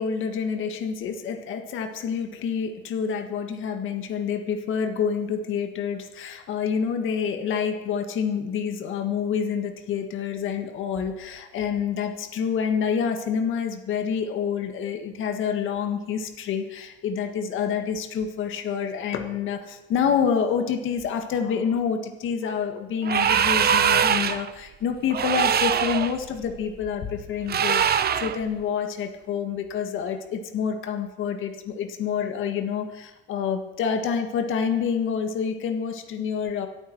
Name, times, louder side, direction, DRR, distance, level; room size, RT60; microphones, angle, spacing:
voice 1, 0.0-36.7, left 7 dB, 80° left, 5 dB, 1.8 m, -27 dB
sound 1, 23.0-24.5 25.1-26.1 27.5-28.4, right 8 dB, 50° right, 0.8 m, -22 dB
26.0 x 8.8 x 4.6 m, 1.1 s
cardioid pair, 90°, 20 cm